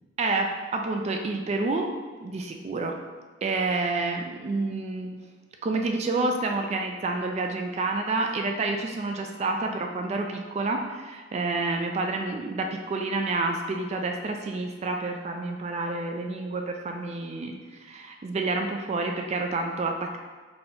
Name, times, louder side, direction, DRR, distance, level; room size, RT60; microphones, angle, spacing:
voice 1, 0.2-1.9 2.2-3.0 3.4-5.2 5.6-20.2, right 3 dB, 35° right, 3 dB, 0.3 m, -29 dB
4.0 x 2.8 x 3.7 m, 1.4 s
head